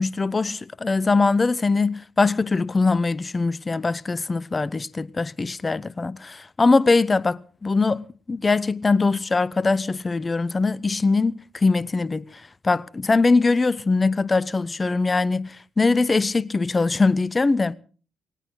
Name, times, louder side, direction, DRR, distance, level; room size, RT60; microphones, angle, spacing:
voice 1, 0.0-17.7, left 3 dB, 30° left, 0.9 m, -22 dB
18.5 x 18.5 x 3.9 m
hypercardioid pair, 45°, 0 cm